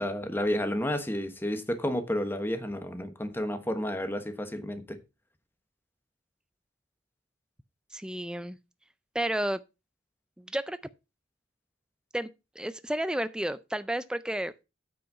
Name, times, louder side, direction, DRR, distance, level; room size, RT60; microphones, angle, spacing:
voice 1, 0.0-5.0, left 1 dB, 10° left, 1.1 m, -31 dB
voice 2, 7.9-8.6 9.1-9.6 10.4-10.8 12.1-12.3 12.6-14.6, right 1 dB, 5° right, 0.4 m, -31 dB
9.2 x 5.5 x 5.3 m
head